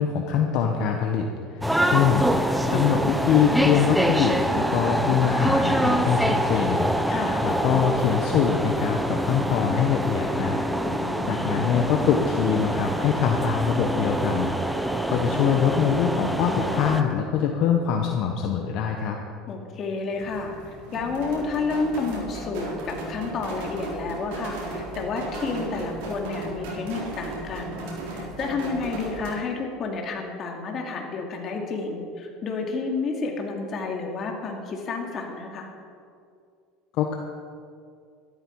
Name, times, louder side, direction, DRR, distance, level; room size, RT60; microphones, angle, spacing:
voice 1, 0.0-2.3 2.7-7.2 7.4-10.6 11.3-19.2 36.9-37.2, left 8 dB, 60° left, 2 dB, 1.2 m, -24 dB
sound 1, 1.6-17.0, right 1 dB, 5° right, 0.8 m, -25 dB
voice 2, 7.1-7.4 10.8-11.4 19.5-27.8 28.1-35.7, left 4 dB, 40° left, 1 dB, 2.5 m, -30 dB
sound 2, 20.1-29.3, right 2 dB, 80° right, 4.0 m, -35 dB
13.5 x 12.5 x 4.8 m, 2.3 s
supercardioid pair, 115°, 0 cm